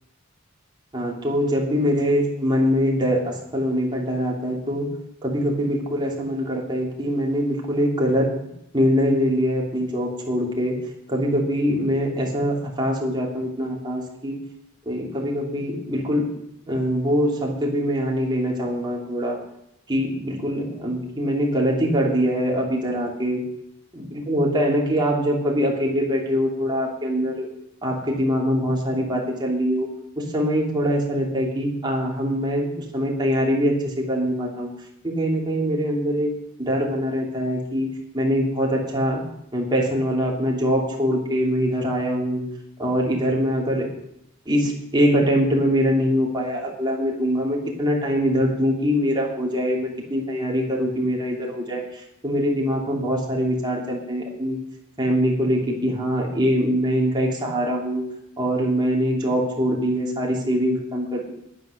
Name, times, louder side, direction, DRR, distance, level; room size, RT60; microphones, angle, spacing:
voice 1, 0.9-4.9 5.2-8.3 8.7-10.8 11.1-14.4 14.8-16.3 16.7-19.4 19.9-23.4 23.9-27.5 27.8-29.9 30.2-34.7 35.0-36.3 36.6-37.9 38.1-39.2 39.5-42.4 42.8-43.9 44.4-54.6 55.0-58.0 58.4-61.3, equal, 20° right, -2 dB, 3.0 m, -23 dB
11.0 x 10.0 x 6.5 m, 0.79 s
head